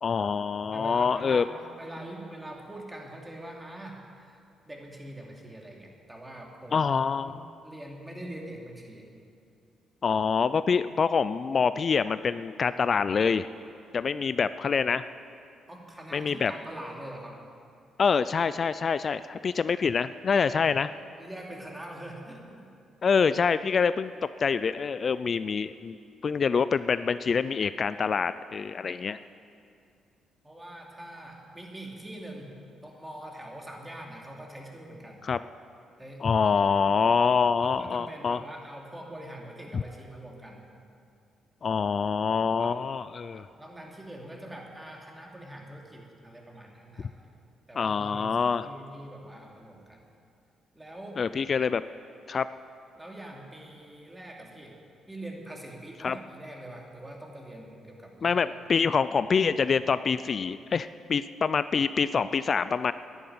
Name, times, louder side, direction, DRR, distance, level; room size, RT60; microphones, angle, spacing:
voice 1, 0.0-1.4 6.7-7.5 10.0-13.5 13.9-15.1 16.1-16.5 18.0-20.9 23.0-26.0 26.2-29.2 35.3-35.4 36.2-38.4 39.7-39.8 41.6-43.5 47.8-48.7 51.2-51.8 52.3-52.5 56.0-56.2 58.2-62.9, left 5 dB, 45° left, 14 dB, 0.4 m, -26 dB
voice 2, 0.7-4.4 4.7-6.9 7.2-9.1 15.7-17.4 21.2-22.7 30.4-32.6 32.8-35.3 36.0-36.2 37.6-40.7 42.6-42.7 43.3-47.1 47.7-50.0 50.7-51.3 52.9-54.8 55.1-58.4, right 1 dB, 15° right, 0 dB, 2.8 m, -43 dB
12.0 x 11.0 x 9.4 m, 2.4 s
cardioid pair, 90°, 0 cm